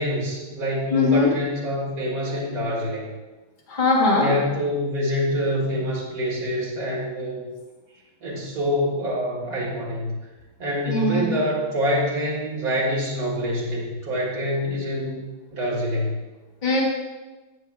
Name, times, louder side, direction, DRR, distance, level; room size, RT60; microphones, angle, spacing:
voice 1, 0.0-3.1 4.1-7.5 8.2-10.2 10.6-15.2 15.5-16.2, equal, 60° right, -4 dB, 2.1 m, -26 dB
voice 2, 0.9-1.3 3.7-4.3 10.9-11.3 16.6-16.8, left 3 dB, 30° left, -4 dB, 1.4 m, -20 dB
9.5 x 6.7 x 2.4 m, 1.2 s
omnidirectional pair, 1.8 m